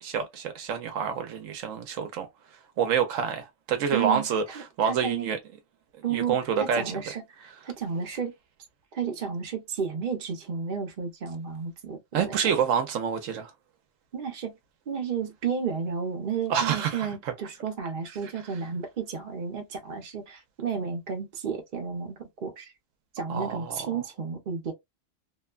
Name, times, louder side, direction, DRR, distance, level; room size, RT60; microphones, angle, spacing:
voice 1, 0.0-2.3 2.8-5.4 6.1-6.8 12.1-13.5 16.5-17.3 23.3-23.8, right 7 dB, 75° right, 1.0 m, -27 dB
voice 2, 3.9-4.3 4.5-5.3 6.0-8.3 8.9-12.4 14.1-14.5 14.9-22.7 23.1-24.7, right 6 dB, 45° right, 0.8 m, -32 dB
3.0 x 2.2 x 2.3 m
omnidirectional pair, 1.4 m